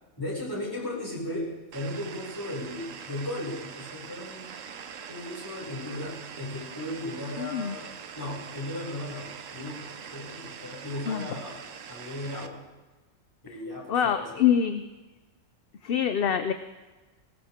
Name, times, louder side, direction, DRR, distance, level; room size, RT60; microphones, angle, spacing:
voice 1, 0.2-4.5 5.1-12.6 13.4-14.4, left 1 dB, 15° left, -5 dB, 6.3 m, -36 dB
sound 1, 1.7-12.5, right 7 dB, 80° right, 1.2 m, -43 dB
voice 2, 7.4-7.7 11.1-11.3 13.9-14.9 15.8-16.5, left 8 dB, 55° left, 9 dB, 0.8 m, -25 dB
20.0 x 19.0 x 3.6 m, 1.2 s
omnidirectional pair, 1.3 m